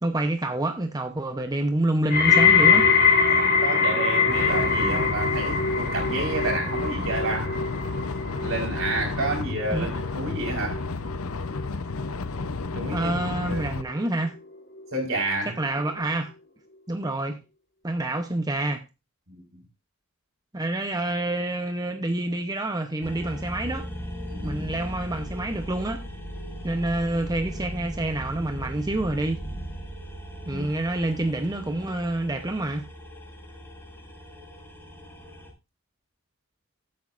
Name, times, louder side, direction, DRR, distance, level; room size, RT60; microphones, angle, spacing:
voice 1, 0.0-2.9 9.7-9.9 12.9-14.4 15.5-16.3 16.9-17.4 17.8-18.8 20.5-23.9 24.4-26.1 26.6-29.4 30.5-32.8, right 1 dB, 15° right, 0.7 m, -27 dB
sound 1, 2.1-13.2 13.5-14.1 14.8-14.9, left 5 dB, 45° left, 1.6 m, -24 dB
voice 2, 3.3-7.6 8.4-10.9 12.7-13.6 14.9-15.6 19.3-19.6 24.3-24.6 30.5-30.6, right 2 dB, 65° right, 4.5 m, -30 dB
sound 2, 4.3-13.8, left 3 dB, 75° left, 0.8 m, -32 dB
sound 3, 23.0-35.5, equal, 10° left, 5.3 m, -38 dB
14.0 x 8.6 x 2.5 m
head